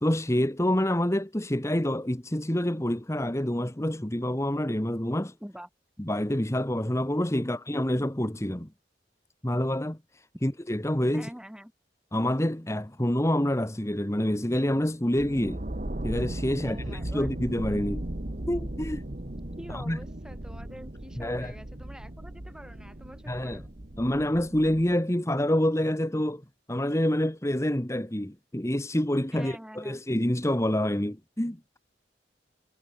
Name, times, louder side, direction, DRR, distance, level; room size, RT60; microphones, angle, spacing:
voice 1, 0.0-5.3 6.0-8.7 9.4-11.3 12.1-15.6 16.0-18.1 18.5-19.1 19.7-20.0 21.2-21.5 23.3-23.6 24.0-26.4 26.7-31.8, left 1 dB, 15° left, 1.4 m, -27 dB
voice 2, 11.1-11.7 16.6-17.3 19.6-23.7 29.3-30.0, equal, 5° right, 4.1 m, -45 dB
sound 1, 15.2-24.9, right 1 dB, 45° right, 1.5 m, -37 dB
head